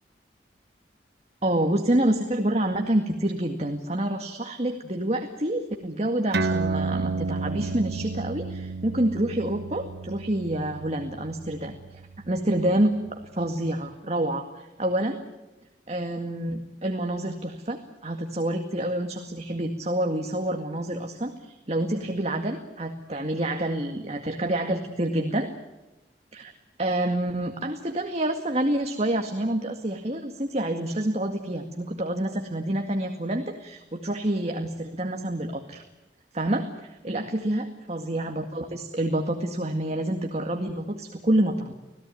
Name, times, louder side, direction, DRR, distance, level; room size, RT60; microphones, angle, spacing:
voice 1, 1.4-12.0 12.3-13.0 13.3-15.2 15.9-25.5 26.3-26.5 26.8-35.8 36.3-41.7, right 1 dB, 40° right, 4 dB, 2.0 m, -27 dB
sound 1, 6.3-13.3, right 3 dB, 70° right, 1.2 m, -32 dB
26.5 x 17.5 x 9.3 m, 1.1 s
head